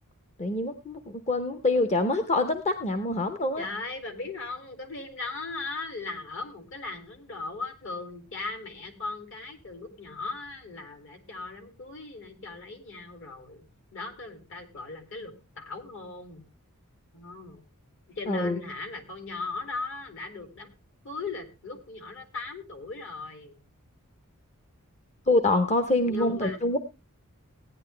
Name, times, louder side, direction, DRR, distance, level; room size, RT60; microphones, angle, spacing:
voice 1, 0.4-3.7 18.3-18.6 25.3-26.8, left 2 dB, 30° left, 8 dB, 0.8 m, -25 dB
voice 2, 3.6-13.7 13.9-16.4 17.1-17.6 18.1-20.7 21.0-23.6 26.0-26.6, left 3 dB, 60° left, 6 dB, 2.6 m, -38 dB
16.5 x 9.9 x 3.3 m, 0.26 s
head